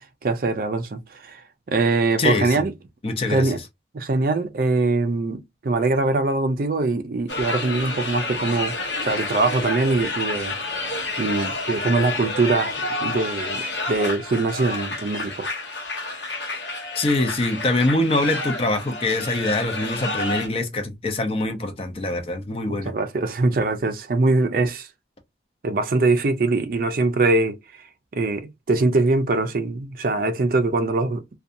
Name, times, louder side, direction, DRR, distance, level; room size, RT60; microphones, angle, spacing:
voice 1, 0.2-1.4 1.7-2.7 3.3-3.6 3.9-8.8 9.0-10.6 11.2-15.5 22.8-24.9 25.6-27.6 28.1-31.2, right 3 dB, 50° right, 0.4 m, -22 dB
voice 2, 2.2-2.6 3.0-3.6 16.9-23.0, left 2 dB, 30° left, 0.6 m, -24 dB
sound 1, 7.3-20.5, left 2 dB, 80° left, 0.8 m, -29 dB
2.6 x 2.2 x 2.5 m
head